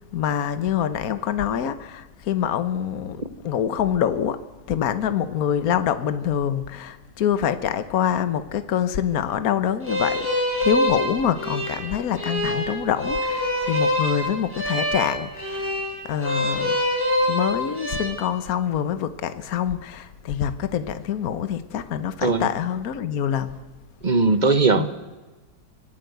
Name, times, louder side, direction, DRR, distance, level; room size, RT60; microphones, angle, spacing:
voice 1, 0.0-4.4 4.7-15.8 16.0-16.8 17.3-23.6 24.7-24.9, left 9 dB, 60° left, 1.5 m, -25 dB
sound 1, 9.8-18.1, left 1 dB, 5° right, 6.7 m, -25 dB
voice 2, 24.0-24.9, right 3 dB, 30° right, 1.2 m, -19 dB
25.0 x 18.0 x 8.1 m
omnidirectional pair, 1.9 m